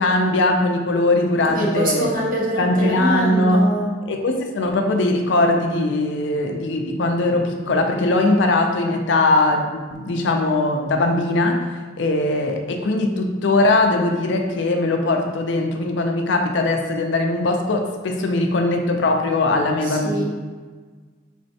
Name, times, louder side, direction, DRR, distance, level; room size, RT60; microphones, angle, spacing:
voice 1, 0.0-2.1 2.6-3.7 4.1-20.2, left 2 dB, 75° left, 3 dB, 0.4 m, -20 dB
voice 2, 1.5-3.9 19.8-20.2, equal, 45° right, -3 dB, 0.8 m, -24 dB
4.3 x 3.0 x 2.8 m, 1.4 s
head